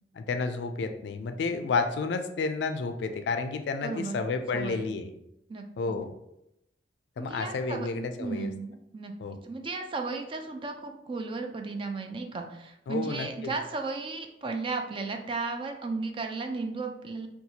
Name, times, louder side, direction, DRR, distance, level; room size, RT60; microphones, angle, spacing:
voice 1, 0.2-5.1 5.8-6.1 7.2-8.5 9.2-9.4 12.9-13.5, left 4 dB, 70° left, 8 dB, 0.3 m, -31 dB
voice 2, 3.8-4.2 4.5-4.9 5.5-5.7 7.2-7.9 8.2-9.1 9.4-17.3, right 3 dB, 30° right, 4 dB, 0.4 m, -34 dB
4.1 x 2.3 x 2.8 m, 0.82 s
head